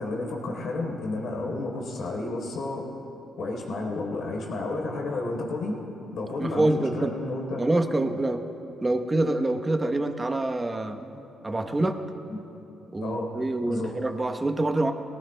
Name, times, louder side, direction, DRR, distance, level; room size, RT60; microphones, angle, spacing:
voice 1, 0.0-2.9 3.4-5.8 6.1-7.6 12.3-12.4 13.0-13.3 13.6-13.9, left 2 dB, 70° left, 0 dB, 3.8 m, -31 dB
voice 2, 6.4-7.2 7.6-8.5 8.8-12.0 12.9-14.9, right 2 dB, 20° right, 6 dB, 1.0 m, -26 dB
22.5 x 18.5 x 2.3 m, 3.0 s
cardioid pair, 90°, 0 cm